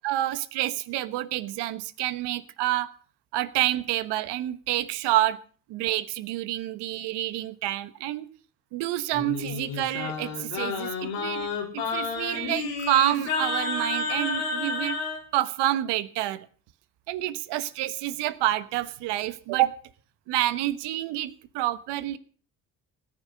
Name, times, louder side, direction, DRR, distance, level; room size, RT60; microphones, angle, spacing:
voice 1, 0.0-2.9 3.3-5.4 5.7-8.3 8.7-15.0 15.3-16.5 17.1-19.7 20.3-22.2, right 14 dB, 80° right, 14 dB, 1.3 m, -28 dB
Singing, 9.1-15.2, left 4 dB, 90° left, 4.4 m, -30 dB
17.5 x 10.5 x 6.6 m, 0.42 s
supercardioid pair, 60°, 41 cm